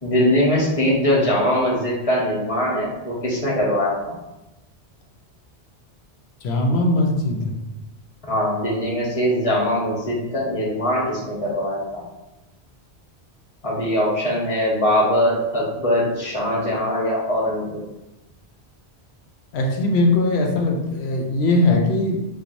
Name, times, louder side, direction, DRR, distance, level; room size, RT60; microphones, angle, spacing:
voice 1, 0.0-4.1 8.3-12.0 13.6-17.8, equal, 35° left, -4 dB, 1.0 m, -21 dB
voice 2, 6.4-7.5 19.5-22.3, left 2 dB, 75° left, 1 dB, 0.9 m, -20 dB
4.4 x 2.4 x 2.6 m, 0.97 s
omnidirectional pair, 1.1 m